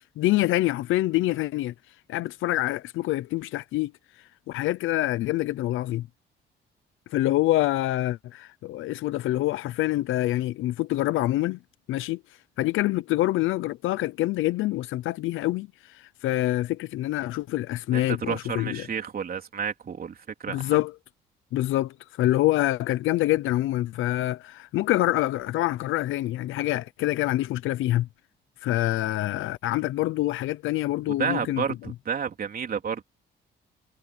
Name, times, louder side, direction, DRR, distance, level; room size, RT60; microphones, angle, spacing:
voice 1, 0.0-1.7 2.1-3.9 4.5-6.1 7.1-11.6 11.9-12.2 12.6-18.9 20.5-20.9 21.5-28.1 28.6-31.6, left 16 dB, 85° left, 0.7 m, -26 dB
voice 2, 17.9-20.8 31.2-33.0, right 7 dB, 50° right, 3.7 m, -31 dB
cardioid pair, 90°, 20 cm